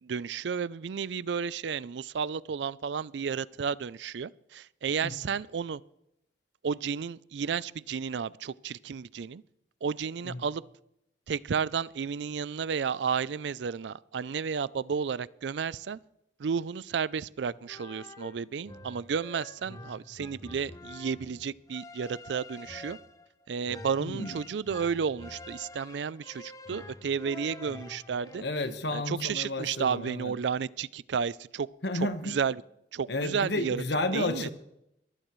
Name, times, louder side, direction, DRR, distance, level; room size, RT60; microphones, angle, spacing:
voice 1, 0.0-5.8 6.6-9.4 9.8-10.6 11.3-16.0 16.4-23.0 23.5-28.4 28.9-31.7 31.9-32.6 32.9-33.8 34.1-34.5, right 6 dB, 70° right, 0.4 m, -32 dB
voice 2, 5.0-5.3 10.2-10.4 24.0-24.4 28.4-30.3 31.8-32.4 33.1-34.5, left 2 dB, 65° left, 1.3 m, -32 dB
sound 1, 17.5-28.4, left 2 dB, 20° left, 0.7 m, -47 dB
22.0 x 15.5 x 3.1 m
head